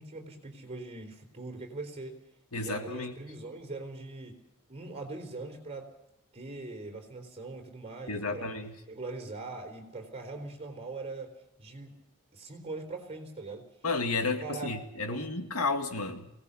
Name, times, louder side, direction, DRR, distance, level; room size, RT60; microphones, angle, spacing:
voice 1, 0.0-2.2 2.6-4.4 4.7-5.9 6.3-8.5 8.9-11.3 11.6-11.9 12.3-13.6 14.4-14.7 15.1-15.4, right 3 dB, 30° right, 2 dB, 4.2 m, -41 dB
voice 2, 2.5-3.1 8.1-8.7 13.8-16.3, left 3 dB, 80° left, 6 dB, 2.1 m, -32 dB
23.0 x 18.5 x 7.1 m, 0.83 s
head